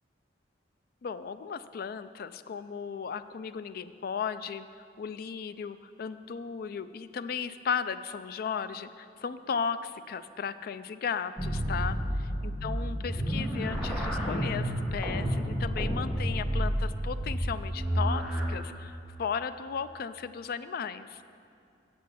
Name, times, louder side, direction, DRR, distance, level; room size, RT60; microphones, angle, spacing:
voice 1, 1.0-4.7 5.0-12.0 12.4-21.2, left 6 dB, 55° left, 13 dB, 0.3 m, -35 dB
sound 1, 11.4-18.5, equal, ahead, 1.3 m, -30 dB
7.5 x 6.1 x 7.1 m, 2.5 s
head